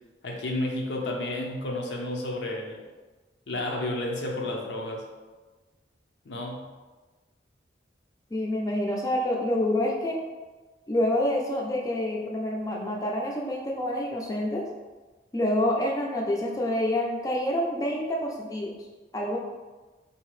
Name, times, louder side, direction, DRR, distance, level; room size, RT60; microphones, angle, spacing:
voice 1, 0.2-2.8 3.5-5.0 6.3-6.6, left 1 dB, 80° left, 0 dB, 0.6 m, -31 dB
voice 2, 8.3-10.2 10.9-14.6 15.3-18.7 19.1-19.4, left 1 dB, 20° left, -2 dB, 0.4 m, -27 dB
4.0 x 2.7 x 3.1 m, 1.3 s
head